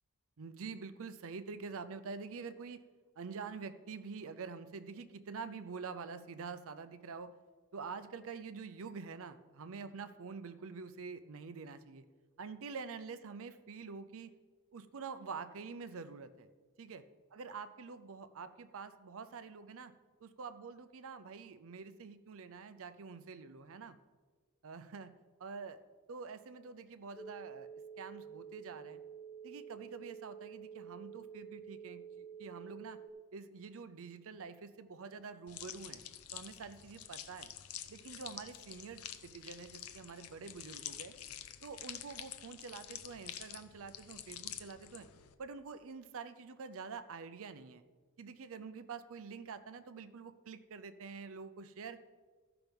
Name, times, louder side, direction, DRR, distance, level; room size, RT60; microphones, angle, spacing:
voice 1, 0.4-2.8 3.2-7.3 7.7-12.0 12.4-14.3 14.7-16.5 16.8-17.0 17.3-19.9 20.2-24.0 24.6-25.1 25.4-25.8 26.1-27.7 28.0-29.0 29.4-33.0 33.3-36.0 36.3-37.5 37.9-41.1 41.6-45.1 45.4-47.8 48.2-52.0, right 5 dB, 65° right, 12 dB, 0.5 m, -46 dB
sound 1, 27.2-33.1, right 7 dB, 20° left, 0.6 m, -49 dB
sound 2, 35.5-45.3, left 11 dB, 70° left, 0.6 m, -48 dB
13.5 x 5.9 x 5.2 m, 1.4 s
head